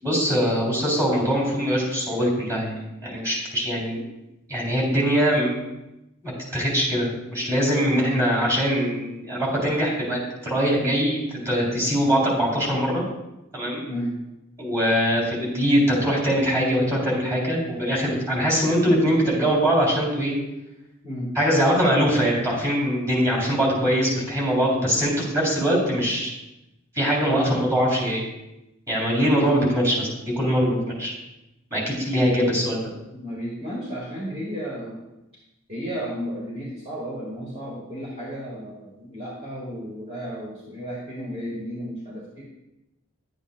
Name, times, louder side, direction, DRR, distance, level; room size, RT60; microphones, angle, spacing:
voice 1, 0.0-4.0 4.5-5.5 6.2-13.0 13.5-13.8 14.6-20.3 21.3-26.3 26.9-28.2 28.9-31.1 31.7-32.9, equal, 15° right, -3 dB, 3.4 m, -22 dB
voice 2, 33.1-35.0 35.7-42.4, equal, 30° right, -7 dB, 2.0 m, -33 dB
11.0 x 8.7 x 2.4 m, 0.94 s
head